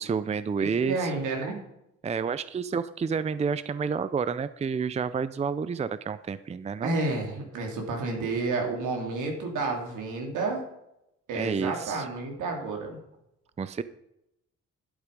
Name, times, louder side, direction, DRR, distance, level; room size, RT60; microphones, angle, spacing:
voice 1, 0.0-1.1 2.0-6.9 11.3-12.1 13.6-13.8, right 5 dB, 20° right, 14 dB, 0.5 m, -29 dB
voice 2, 0.8-1.6 6.8-10.6 11.3-13.0, right 3 dB, 80° right, 2 dB, 3.0 m, -30 dB
11.5 x 8.3 x 5.3 m, 0.83 s
cardioid pair, 90°, 30 cm